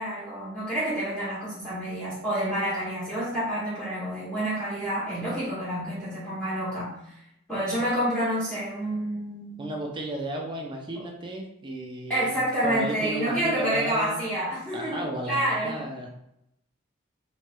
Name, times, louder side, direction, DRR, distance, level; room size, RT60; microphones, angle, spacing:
voice 1, 0.0-7.2 7.5-9.6 10.9-11.0 12.1-15.9, right 1 dB, 5° left, -11 dB, 1.4 m, -28 dB
voice 2, 9.6-12.3 12.6-14.3 14.7-16.1, right 1 dB, 25° right, 0 dB, 0.5 m, -33 dB
4.5 x 3.0 x 2.2 m, 0.80 s
head